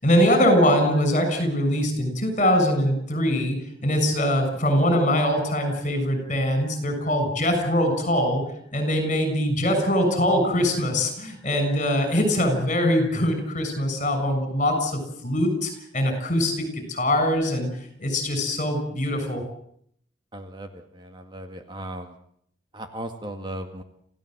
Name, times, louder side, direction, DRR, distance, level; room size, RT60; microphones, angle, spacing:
voice 1, 0.0-3.5 3.8-8.4 8.7-17.7 18.0-19.4, equal, 40° left, 7 dB, 6.9 m, -22 dB
voice 2, 20.3-22.2 22.7-23.8, right 1 dB, 25° right, 6 dB, 1.9 m, -37 dB
27.5 x 16.0 x 7.9 m, 0.69 s
head